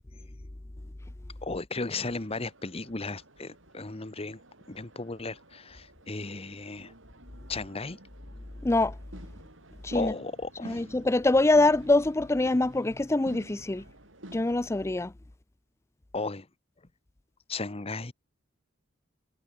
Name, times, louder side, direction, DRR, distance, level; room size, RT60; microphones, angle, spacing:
voice 1, 1.4-4.4 4.7-6.9 7.5-8.0 9.9-10.8 16.1-16.5 17.5-18.1, left 3 dB, 30° left, 1.1 m, -35 dB
sound 1, 1.9-14.9, right 1 dB, 75° right, 7.2 m, -51 dB
voice 2, 8.6-9.0 9.8-10.1 10.6-13.8 14.3-15.1, left 2 dB, 15° left, 0.4 m, -24 dB
head